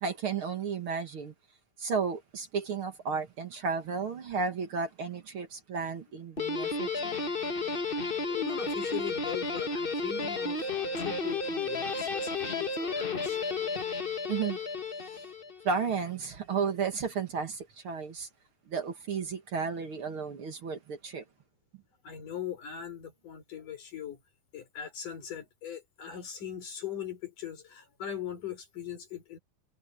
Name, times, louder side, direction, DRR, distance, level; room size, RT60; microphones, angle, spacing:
voice 1, 0.0-1.3 1.8-7.2 14.3-14.6 15.1-15.2 15.6-18.3 18.7-21.2, right 5 dB, 50° right, 2.1 m, -33 dB
Guitar, 6.4-15.7, left 3 dB, 40° left, 0.7 m, -32 dB
voice 2, 8.3-13.4 14.0-14.1 22.0-24.2 24.5-29.4, left 9 dB, 90° left, 7.1 m, -40 dB
omnidirectional pair, 3.6 m